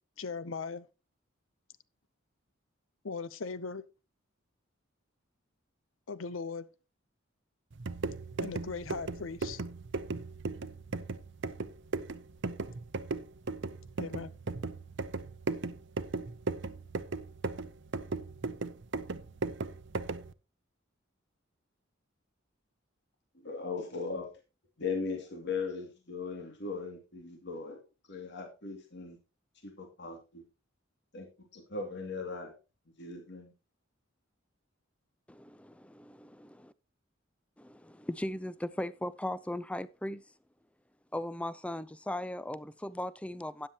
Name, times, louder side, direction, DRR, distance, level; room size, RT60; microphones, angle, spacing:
voice 1, 0.2-0.9 3.0-3.8 6.1-6.7 8.4-9.6 14.0-14.3, left 4 dB, 75° left, 0.7 m, -38 dB
sound 1, 7.7-20.3, right 3 dB, 60° right, 0.7 m, -37 dB
voice 2, 23.4-24.3 24.8-27.8 28.1-29.2 29.6-30.4 31.1-31.3 31.5-32.5 33.0-33.5, left 4 dB, 60° left, 2.5 m, -38 dB
voice 3, 35.3-36.7 37.6-40.2 41.1-43.7, left 1 dB, 5° left, 0.5 m, -38 dB
13.0 x 9.8 x 2.9 m
head